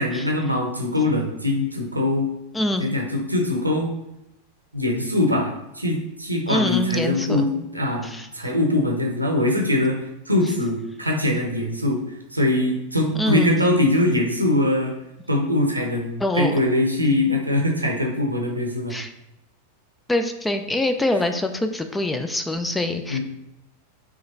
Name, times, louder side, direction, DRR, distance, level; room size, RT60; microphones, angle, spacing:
voice 1, 0.0-2.3 2.8-3.9 4.7-10.0 10.3-12.0 12.3-14.9 15.3-18.9 23.1-23.2, left 1 dB, 85° right, 1 dB, 0.8 m, -22 dB
voice 2, 2.5-2.8 6.5-7.4 8.0-8.3 13.2-13.5 16.2-16.5 18.9-19.1 20.1-23.2, left 1 dB, 10° left, 7 dB, 0.4 m, -24 dB
3.8 x 3.0 x 3.9 m, 0.87 s
figure-of-eight pair, 90°, 0 cm